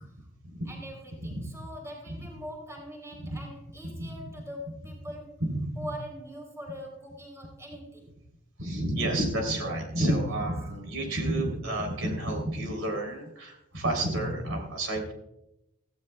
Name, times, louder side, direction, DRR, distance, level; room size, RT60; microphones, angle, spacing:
voice 1, 0.7-5.4 5.8-8.1 13.8-13.9, equal, 15° right, 0 dB, 3.7 m, -42 dB
voice 2, 3.8-4.1 5.4-5.9 8.6-15.1, right 1 dB, 85° right, 2 dB, 3.6 m, -30 dB
17.5 x 15.0 x 2.3 m, 0.85 s
head